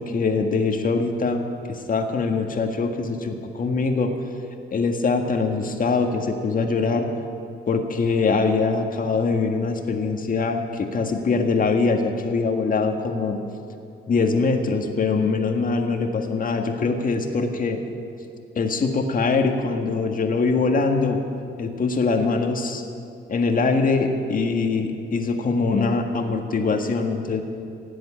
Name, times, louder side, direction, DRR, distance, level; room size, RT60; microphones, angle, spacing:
voice 1, 0.0-4.1 4.7-7.1 7.7-13.4 14.1-17.8 18.5-21.2 21.6-22.8 23.3-27.4, left 4 dB, 45° left, 4 dB, 1.7 m, -23 dB
17.0 x 7.7 x 9.0 m, 2.5 s
cardioid pair, 90°, 20 cm